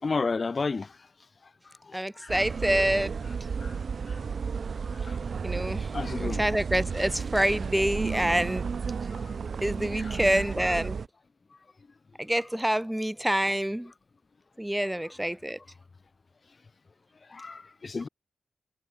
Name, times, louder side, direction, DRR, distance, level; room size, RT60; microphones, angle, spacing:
voice 1, 0.0-0.9 1.9-2.4 3.6-3.7 5.0-5.2 5.9-6.4 9.1-9.3 9.9-10.2 17.3-18.1, left 4 dB, 40° left, 4.4 m, -32 dB
voice 2, 1.9-3.1 5.4-5.9 6.2-8.6 9.6-11.0 12.2-13.9 14.6-15.6, right 1 dB, 5° right, 4.0 m, -27 dB
sound 1, 2.3-11.1, right 5 dB, 55° right, 5.1 m, -33 dB
cardioid pair, 95°, 0 cm